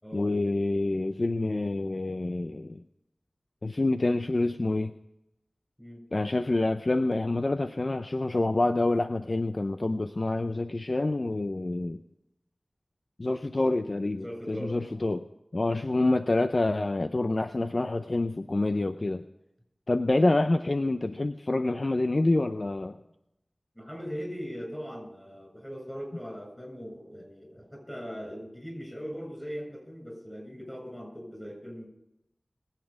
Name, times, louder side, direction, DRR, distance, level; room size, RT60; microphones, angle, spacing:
voice 1, 0.1-2.8 3.6-4.9 6.1-12.0 13.2-15.3 15.5-19.2 19.9-23.0, left 2 dB, 50° left, 9 dB, 0.6 m, -27 dB
voice 2, 14.1-15.0 23.8-31.9, equal, 10° left, 1 dB, 7.2 m, -40 dB
21.5 x 8.3 x 5.1 m, 0.85 s
wide cardioid pair, 55°, 0 cm